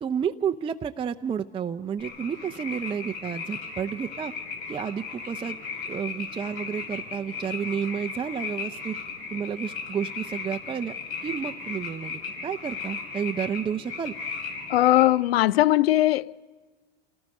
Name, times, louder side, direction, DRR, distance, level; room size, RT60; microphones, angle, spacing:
voice 1, 0.0-4.3 4.7-5.6 5.9-9.0 9.3-11.0 11.2-14.1, right 7 dB, 20° right, 0.5 m, -31 dB
sound 1, 2.0-15.1, left 5 dB, 65° left, 5.5 m, -36 dB
voice 2, 14.7-16.4, left 14 dB, 90° left, 0.5 m, -20 dB
28.5 x 18.0 x 5.4 m
hypercardioid pair, 110°, 29 cm